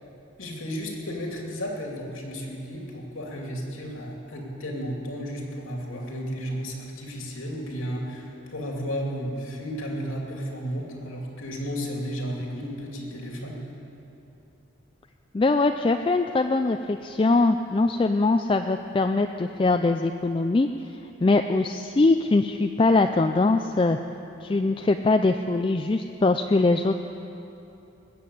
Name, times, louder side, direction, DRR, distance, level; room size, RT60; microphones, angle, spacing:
voice 1, 0.4-13.6, equal, 90° left, -1 dB, 2.7 m, -33 dB
voice 2, 15.3-20.7 21.2-24.0 24.4-27.0, left 3 dB, 25° left, 6 dB, 0.3 m, -22 dB
20.0 x 7.8 x 8.4 m, 2.9 s
head